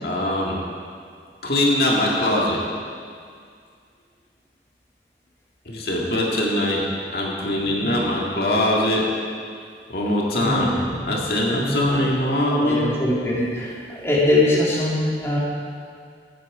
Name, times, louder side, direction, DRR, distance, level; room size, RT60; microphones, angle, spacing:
voice 1, 0.0-0.6 1.4-2.6 5.7-9.1 9.9-10.7 11.0-12.9, left 1 dB, 60° left, -3 dB, 2.1 m, -22 dB
voice 2, 7.5-7.9 10.3-11.0 11.5-12.0 12.5-15.4, left 1 dB, 15° left, -6 dB, 2.3 m, -23 dB
17.0 x 9.3 x 5.0 m, 2.2 s
head